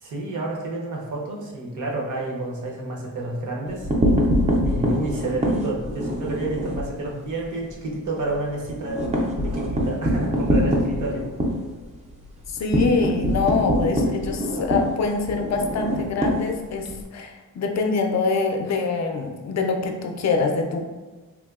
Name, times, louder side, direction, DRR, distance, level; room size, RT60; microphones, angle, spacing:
voice 1, 0.0-3.9 4.6-9.1 9.4-11.2, right 2 dB, 55° right, -2 dB, 0.8 m, -29 dB
sound 1, 3.7-6.9 7.3-7.4 7.7-7.8 8.2-17.0, equal, 20° right, 0.4 m, -24 dB
voice 2, 12.5-20.8, left 4 dB, 50° left, 3 dB, 0.4 m, -24 dB
3.5 x 2.6 x 2.3 m, 1.2 s
cardioid pair, 135°, 36 cm